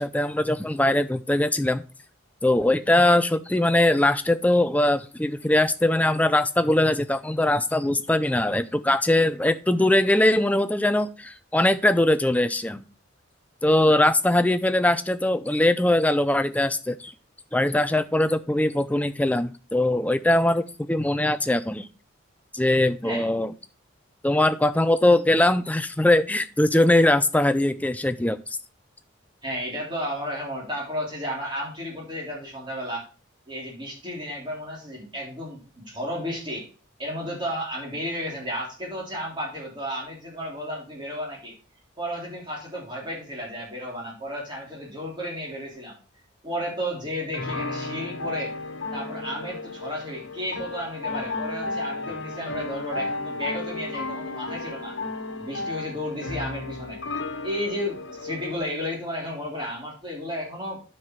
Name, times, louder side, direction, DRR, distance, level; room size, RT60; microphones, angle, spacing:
voice 1, 0.0-1.8 2.4-12.8 13.6-17.1 17.5-20.6 20.9-21.9 22.5-23.5 24.2-28.4, left 1 dB, 5° left, 11 dB, 0.4 m, -21 dB
voice 2, 29.4-33.1 33.5-36.7 37.0-41.5 42.0-45.9 46.4-48.5 48.9-55.0 55.4-57.0 57.4-60.8, equal, 25° right, -3 dB, 3.5 m, -33 dB
sound 1, 47.3-58.6, left 2 dB, 65° left, 1.5 m, -33 dB
9.2 x 5.8 x 4.6 m, 0.35 s
head